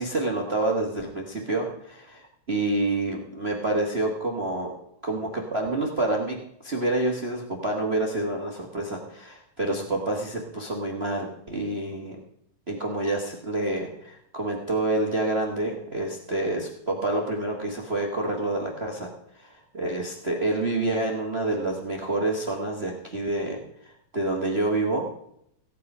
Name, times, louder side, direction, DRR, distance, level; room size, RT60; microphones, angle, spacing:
voice 1, 0.0-4.7 5.0-6.4 6.6-12.2 12.7-19.1 19.4-25.1, right 2 dB, 55° right, 1 dB, 0.6 m, -28 dB
16.5 x 8.5 x 5.4 m, 0.73 s
omnidirectional pair, 3.9 m